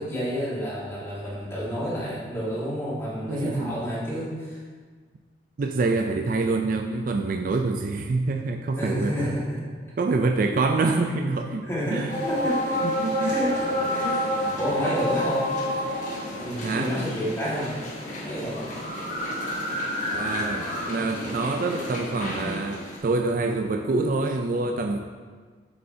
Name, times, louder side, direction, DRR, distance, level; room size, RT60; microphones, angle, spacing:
voice 1, 0.0-4.6 8.8-9.7 11.6-12.8 13.2-14.1 14.4-15.5 16.1-17.8 18.2-18.8, equal, 15° left, -8 dB, 1.7 m, -30 dB
voice 2, 3.3-3.8 5.6-9.3 10.0-12.1 12.8-13.4 14.0-14.4 16.6-16.9 20.1-25.0, right 3 dB, 45° right, 4 dB, 0.3 m, -26 dB
sound 1, 12.1-23.0, left 1 dB, 40° left, 1.3 m, -29 dB
6.9 x 6.5 x 2.7 m, 1.5 s
head